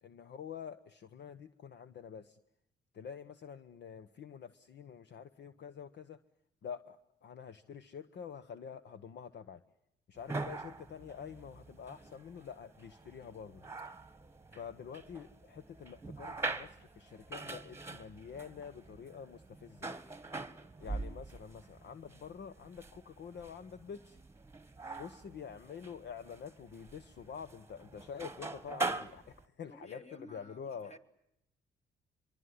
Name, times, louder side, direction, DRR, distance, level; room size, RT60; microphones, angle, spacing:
voice 1, 0.0-2.4 2.9-6.2 6.6-9.6 10.1-13.6 14.5-19.9 20.8-24.2 25.0-30.9, left 7 dB, 60° left, 12 dB, 1.1 m, -47 dB
sound 1, 10.2-29.4, right 3 dB, 15° right, 1.6 m, -44 dB
voice 2, 20.8-21.2 24.8-25.1 29.7-31.0, left 2 dB, 35° left, 8 dB, 3.0 m, -54 dB
24.5 x 24.0 x 9.7 m, 0.81 s
cardioid pair, 90°, 20 cm